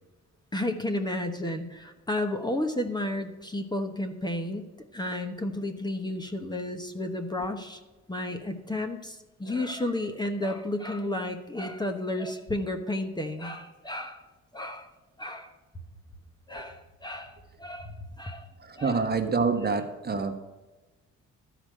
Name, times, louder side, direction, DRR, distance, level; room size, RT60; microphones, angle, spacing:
voice 1, 0.5-7.8 8.1-14.2 14.5-14.9 15.2-15.5 16.5-18.5 18.8-19.0, left 1 dB, 15° left, 5 dB, 1.1 m, -32 dB
voice 2, 18.6-20.4, right 4 dB, 35° right, 6 dB, 1.3 m, -27 dB
12.5 x 5.0 x 7.7 m, 1.2 s
cardioid pair, 90°, 30 cm